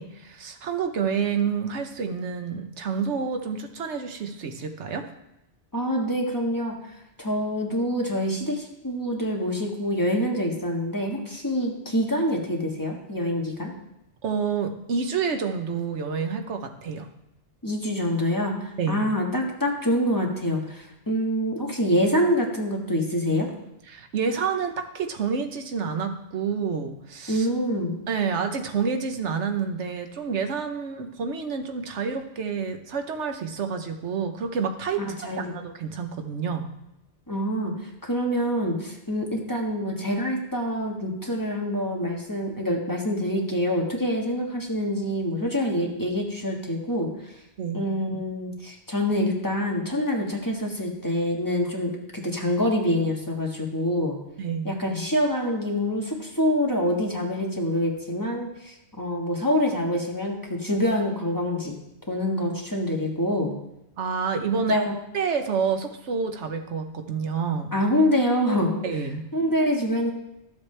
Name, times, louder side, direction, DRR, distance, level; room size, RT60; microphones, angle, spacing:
voice 1, 0.0-5.0 14.2-17.1 18.8-19.0 23.9-27.5 28.1-36.7 47.6-47.8 54.4-54.7 64.0-64.8 65.1-67.7 68.8-69.2, right 6 dB, 85° right, 6 dB, 1.2 m, -28 dB
voice 2, 5.7-6.8 7.2-13.7 17.6-23.5 27.3-27.9 35.0-35.5 37.3-47.1 47.7-54.2 54.6-61.7 62.1-63.5 64.7-64.9 67.7-68.8 69.3-70.1, equal, 20° left, -2 dB, 1.4 m, -26 dB
13.5 x 7.3 x 3.3 m, 0.88 s
omnidirectional pair, 1.2 m